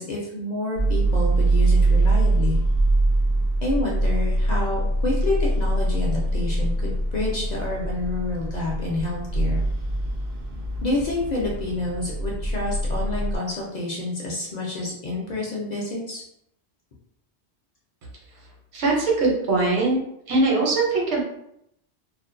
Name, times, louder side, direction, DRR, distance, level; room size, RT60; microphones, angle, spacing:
voice 1, 0.0-2.6 3.6-9.6 10.8-16.2, left 2 dB, 55° left, -3 dB, 0.5 m, -28 dB
sound 1, 0.8-13.4, right 2 dB, 55° right, 0.5 m, -23 dB
voice 2, 18.7-20.0 20.3-21.2, right 3 dB, 85° right, -2 dB, 1.0 m, -21 dB
2.4 x 2.1 x 2.5 m, 0.77 s
omnidirectional pair, 1.1 m